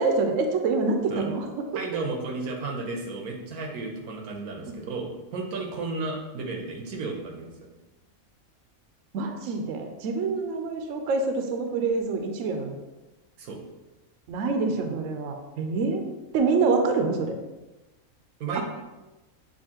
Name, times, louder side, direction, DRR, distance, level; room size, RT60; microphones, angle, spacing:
voice 1, 0.0-1.7 4.7-4.8 9.1-12.8 14.3-16.0 16.3-17.3 18.5-18.6, right 4 dB, 70° right, 4 dB, 0.9 m, -26 dB
voice 2, 1.7-7.5 13.4-13.6 18.4-18.6, right 3 dB, 90° right, 2 dB, 1.3 m, -33 dB
7.0 x 2.6 x 2.9 m, 1.1 s
omnidirectional pair, 1.5 m